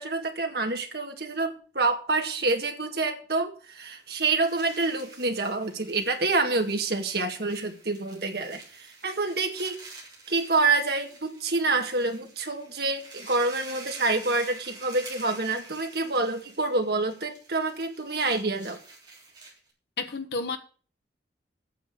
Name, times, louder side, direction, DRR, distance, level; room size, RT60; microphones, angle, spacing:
voice 1, 0.0-9.8 10.3-18.8, right 3 dB, 60° right, 1.9 m, -27 dB
sound 1, 3.9-19.7, right 3 dB, 25° right, 3.7 m, -48 dB
voice 2, 20.0-20.6, left 4 dB, 65° left, 1.4 m, -31 dB
9.1 x 6.8 x 6.7 m
head